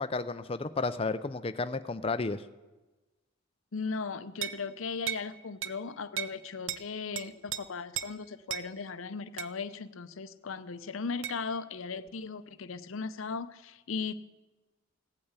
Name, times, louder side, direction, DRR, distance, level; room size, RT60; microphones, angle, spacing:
voice 1, 0.0-2.4, left 3 dB, 25° left, 11 dB, 0.5 m, -32 dB
voice 2, 3.7-14.1, left 5 dB, 70° left, 13 dB, 0.7 m, -37 dB
sound 1, 4.4-4.6 5.1-5.3 5.6-5.8 6.2-6.4 6.7-6.8 7.2-7.6 8.0-8.1 8.5-8.7 9.4-9.5 11.2-11.4, right 10 dB, 60° right, 0.7 m, -35 dB
16.5 x 8.8 x 8.1 m, 1.2 s
head